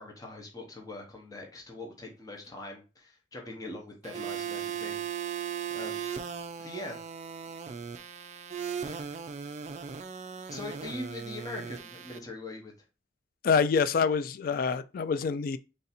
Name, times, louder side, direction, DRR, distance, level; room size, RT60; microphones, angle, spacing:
voice 1, 0.0-5.0 5.3-5.4 5.7-6.0 6.6-7.0 8.9-9.1 10.5-12.7, left 2 dB, 20° left, 0.8 m, -42 dB
sound 1, 4.0-12.2, right 7 dB, 40° right, 0.3 m, -37 dB
voice 2, 13.4-15.6, left 5 dB, 50° left, 0.3 m, -26 dB
3.3 x 2.6 x 4.2 m
head